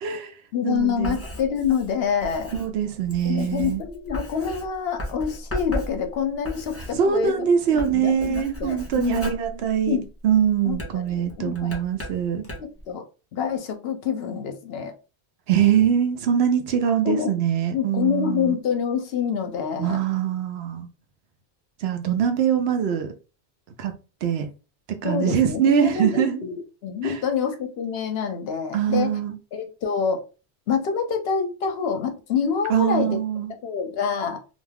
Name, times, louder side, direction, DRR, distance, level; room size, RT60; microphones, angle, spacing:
voice 1, 0.0-0.3 0.6-1.2 2.5-3.8 6.9-10.0 10.2-12.4 15.5-18.6 19.8-20.9 21.8-23.1 23.8-23.9 24.2-24.5 24.9-26.4 27.0-27.2 28.7-29.3 32.7-33.5, right 8 dB, 75° right, 0.8 m, -23 dB
voice 2, 0.5-2.5 3.2-7.5 7.7-9.3 9.9-10.1 10.6-11.8 12.6-13.0 13.3-14.9 17.0-17.3 17.7-20.0 25.0-29.1 29.5-30.2 30.7-33.2 33.6-34.4, left 7 dB, 70° left, 0.8 m, -26 dB
Writing, 0.8-7.4 7.7-10.2 10.7-12.8, equal, 15° left, 0.6 m, -36 dB
2.4 x 2.2 x 3.3 m
omnidirectional pair, 1.1 m